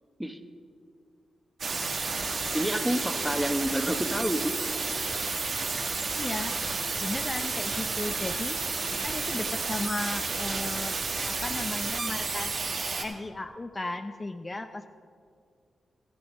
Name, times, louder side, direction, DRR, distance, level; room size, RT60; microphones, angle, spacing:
sound 1, 1.6-13.0, right 4 dB, 60° right, 1.2 m, -31 dB
voice 1, 2.5-4.6, equal, 5° right, 8 dB, 1.0 m, -28 dB
voice 2, 6.2-6.6 7.0-8.6 9.0-10.9 11.3-12.6 12.9-14.9, left 2 dB, 35° left, 7 dB, 0.6 m, -35 dB
13.0 x 8.7 x 5.3 m, 2.2 s
supercardioid pair, 40°, 0 cm